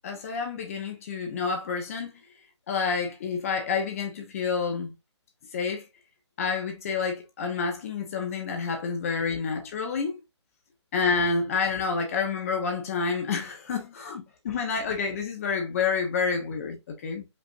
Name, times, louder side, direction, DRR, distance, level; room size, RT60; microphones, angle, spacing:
voice 1, 0.0-2.1 2.7-4.9 5.5-5.8 6.4-10.2 10.9-17.3, left 5 dB, 30° left, 1.0 m, -29 dB
5.4 x 3.3 x 2.6 m
hypercardioid pair, 165°, 15 cm